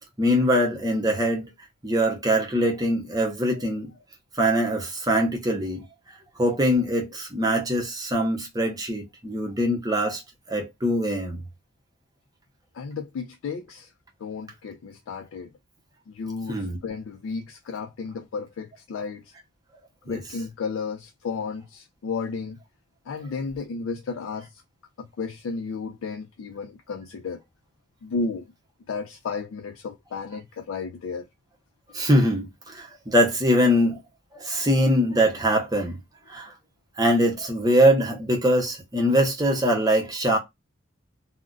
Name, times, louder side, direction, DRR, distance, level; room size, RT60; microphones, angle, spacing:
voice 1, 0.2-1.5 1.8-3.9 4.4-5.8 6.4-10.2 10.5-11.4 16.5-16.8 20.1-20.2 31.9-34.0 34.3-36.0 36.3-36.5 37.0-40.4, equal, 20° right, 0.7 m, -22 dB
voice 2, 12.7-13.9 14.2-15.5 16.1-19.3 20.1-22.6 23.1-24.6 25.0-27.4 28.0-28.5 28.9-31.3, left 4 dB, 80° left, 0.3 m, -33 dB
2.4 x 2.1 x 3.7 m
head